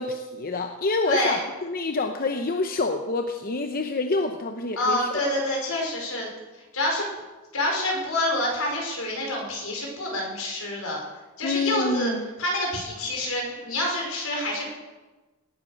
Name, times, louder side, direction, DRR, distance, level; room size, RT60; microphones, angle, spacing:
voice 1, 0.0-5.1 11.4-12.3, left 3 dB, 45° left, 5 dB, 0.8 m, -27 dB
voice 2, 1.0-1.4 4.8-6.3 6.7-7.1 7.5-11.0 11.4-12.1 12.4-14.7, left 1 dB, 75° left, 0 dB, 5.2 m, -27 dB
18.5 x 9.2 x 6.4 m, 1.2 s
head